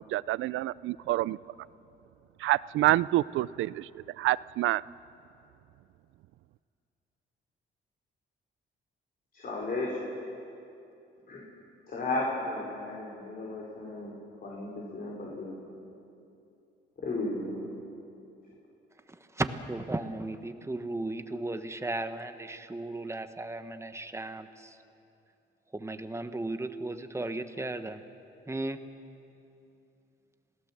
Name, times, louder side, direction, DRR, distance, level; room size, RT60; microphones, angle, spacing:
voice 1, 0.0-1.4 2.4-3.8 4.2-4.8, right 15 dB, 80° right, 20 dB, 0.4 m, -27 dB
voice 2, 9.3-10.0 11.3-11.4 11.9-14.1 14.4-15.5 17.0-17.8, left 2 dB, 50° left, -4 dB, 4.9 m, -34 dB
voice 3, 19.1-24.8 25.7-28.0 28.5-28.8, right 2 dB, 15° right, 9 dB, 1.4 m, -35 dB
27.5 x 17.5 x 7.5 m, 2.7 s
cardioid pair, 90°, 20 cm